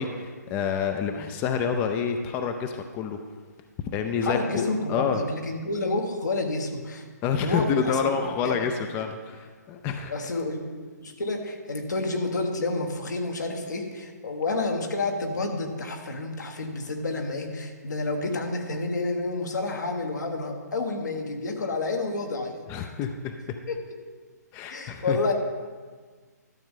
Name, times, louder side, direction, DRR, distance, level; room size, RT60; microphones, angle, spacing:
voice 1, 0.0-3.2 3.9-5.2 7.2-10.1 22.7-23.3 24.5-25.2, left 6 dB, 20° left, 6 dB, 0.4 m, -28 dB
voice 2, 4.2-7.1 7.4-8.1 8.4-8.7 10.1-10.6 11.0-22.9 23.7-24.0 24.7-25.3, left 2 dB, 75° left, 3 dB, 1.4 m, -29 dB
12.0 x 7.1 x 3.8 m, 1.5 s
hypercardioid pair, 140°, 10 cm